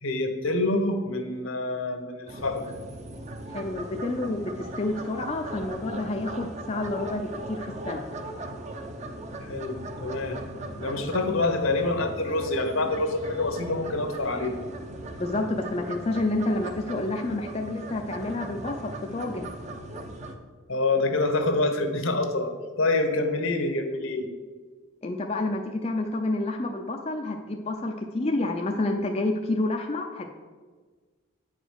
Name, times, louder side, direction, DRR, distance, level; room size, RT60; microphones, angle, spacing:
voice 1, 0.0-2.8 9.4-10.4 10.8-14.5 20.7-24.3, left 2 dB, 75° left, 6 dB, 1.1 m, -26 dB
sound 1, 2.3-20.4, right 1 dB, 35° right, 0.7 m, -39 dB
voice 2, 3.5-8.0 15.2-19.5 25.0-30.3, left 2 dB, 30° left, 2 dB, 0.5 m, -29 dB
8.9 x 5.0 x 6.3 m, 1.5 s
head